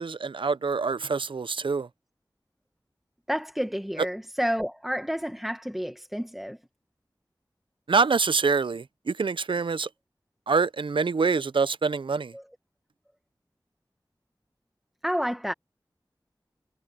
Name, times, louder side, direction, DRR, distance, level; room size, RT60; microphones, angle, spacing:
voice 1, 0.0-1.9 7.9-9.9 10.5-12.3, right 4 dB, 85° right, 0.5 m, -25 dB
voice 2, 3.3-6.6 12.3-12.5 15.0-15.5, equal, ahead, 1.0 m, -30 dB
wide cardioid pair, 65°, 8 cm